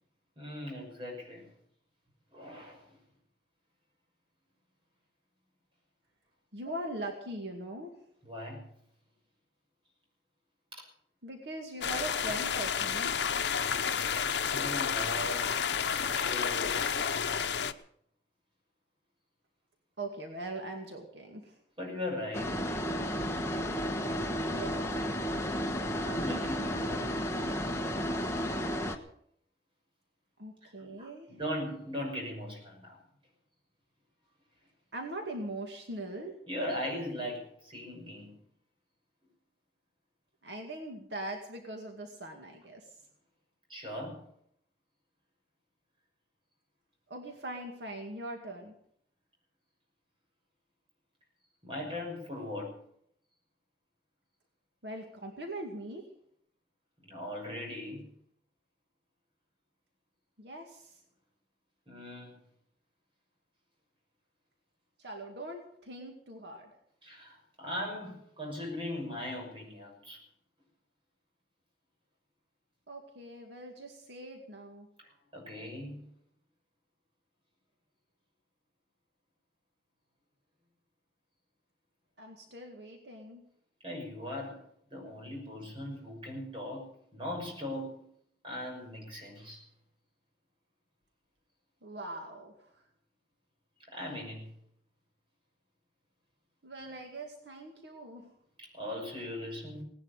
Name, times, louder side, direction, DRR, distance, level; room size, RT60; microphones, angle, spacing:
voice 1, 0.4-1.5 2.3-2.9 8.3-8.6 10.7-10.8 14.5-15.6 16.0-17.5 21.8-22.8 26.0-27.3 30.6-33.0 36.5-38.3 43.7-44.2 51.6-52.8 57.0-58.0 61.9-62.3 67.0-70.2 75.0-76.0 83.8-84.6 84.9-88.1 88.4-89.6 93.9-94.5 96.8-97.0 98.6-99.8, left 1 dB, 30° right, 0 dB, 6.2 m, -39 dB
voice 2, 6.5-8.0 11.2-13.2 20.0-21.6 24.5-25.1 30.4-31.4 34.9-36.3 40.4-42.9 47.1-48.8 54.8-56.1 60.4-61.0 65.0-66.7 72.9-74.9 82.2-83.4 91.8-92.8 96.6-98.3, right 1 dB, 80° right, 3 dB, 2.2 m, -41 dB
sound 1, 11.8-17.7, left 7 dB, 85° left, 0.8 m, -31 dB
sound 2, 22.3-29.0, equal, 15° left, 1.3 m, -32 dB
18.0 x 11.0 x 6.8 m, 0.68 s
head